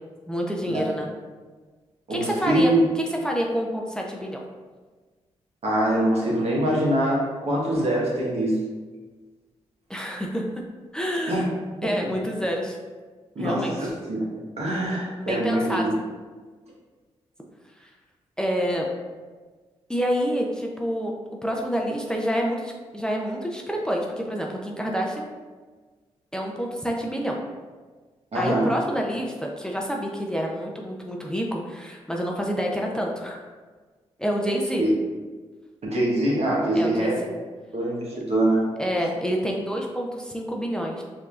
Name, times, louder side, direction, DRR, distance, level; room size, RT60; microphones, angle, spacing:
voice 1, 0.3-1.1 2.1-2.7 3.2-4.4 9.9-10.4 10.9-11.5 11.8-12.8 13.4-13.8 15.2-15.9 17.8-17.9 18.4-18.9 19.9-21.1 21.4-25.3 26.3-27.4 28.3-33.5 34.2-34.8 36.7-37.3 38.8-41.0, equal, 5° left, -1 dB, 0.6 m, -27 dB
voice 2, 2.1-2.8 5.6-8.7 11.3-11.4 12.0-12.1 13.3-14.3 14.6-15.8 28.3-28.7 34.8-35.0 35.8-37.2 37.7-38.7, right 1 dB, 60° right, -4 dB, 1.2 m, -24 dB
4.6 x 2.8 x 2.4 m, 1.4 s
supercardioid pair, 40°, 12 cm